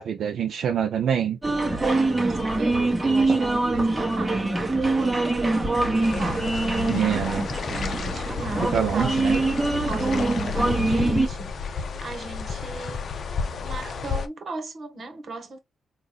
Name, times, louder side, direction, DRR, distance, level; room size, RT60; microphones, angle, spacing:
voice 1, 0.0-1.4 6.9-7.4 8.7-9.4, right 8 dB, 75° right, 0.5 m, -25 dB
sound 1, 1.4-11.3, right 2 dB, 15° right, 1.2 m, -24 dB
voice 2, 1.8-7.2 7.7-9.5 9.8-13.1 13.6-15.6, right 3 dB, 50° right, 1.3 m, -36 dB
sound 2, 6.0-14.3, left 5 dB, 55° left, 0.6 m, -31 dB
4.0 x 2.6 x 3.1 m
cardioid pair, 90°, 0 cm